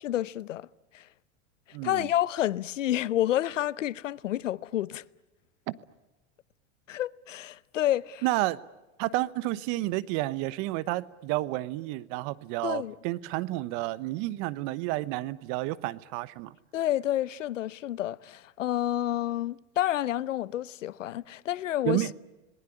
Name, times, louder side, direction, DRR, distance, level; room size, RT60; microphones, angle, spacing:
voice 1, 0.0-0.7 0.9-1.1 1.8-5.0 6.9-8.2 12.6-13.0 16.7-22.1, left 13 dB, 85° left, 0.8 m, -29 dB
voice 2, 1.7-2.1 5.7-5.8 8.2-8.6 9.0-16.5 21.8-22.1, right 18 dB, 50° right, 1.1 m, -30 dB
27.0 x 20.0 x 9.6 m
hypercardioid pair, 105°, 37 cm